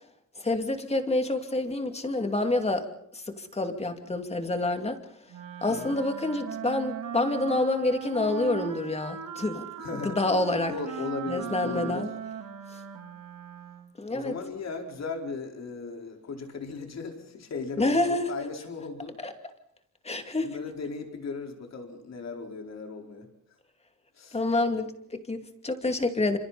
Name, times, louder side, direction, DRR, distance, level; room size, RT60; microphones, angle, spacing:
voice 1, 0.4-2.9 3.1-5.0 5.6-9.7 10.0-10.7 11.3-12.1 14.0-14.4 17.8-18.3 19.2-19.3 20.0-20.6 24.3-26.4, left 2 dB, 20° left, 6 dB, 2.6 m, -27 dB
Wind instrument woodwind instrument, 5.3-14.0, right 9 dB, 80° right, 3.5 m, -38 dB
voice 2, 9.8-10.2 10.7-12.1 14.1-19.2 20.4-23.3 24.1-24.4, left 4 dB, 55° left, 3 dB, 4.6 m, -37 dB
29.0 x 27.0 x 4.2 m, 0.71 s
wide cardioid pair, 150°, 32 cm